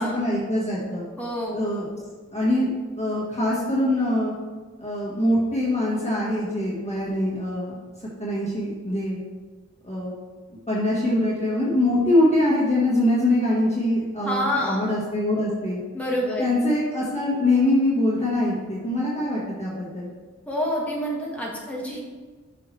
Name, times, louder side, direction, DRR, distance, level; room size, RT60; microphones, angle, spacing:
voice 1, 0.0-1.0 1.5-1.9 2.3-2.7 3.0-4.3 4.8-7.7 8.2-9.2 9.8-10.1 10.7-15.8 16.4-20.1, left 1 dB, 20° left, -7 dB, 1.5 m, -23 dB
voice 2, 1.2-1.6 14.2-14.8 15.9-16.5 20.4-22.0, equal, 5° left, -4 dB, 1.8 m, -27 dB
7.0 x 5.7 x 3.2 m, 1.4 s
wide cardioid pair, 45°, 29 cm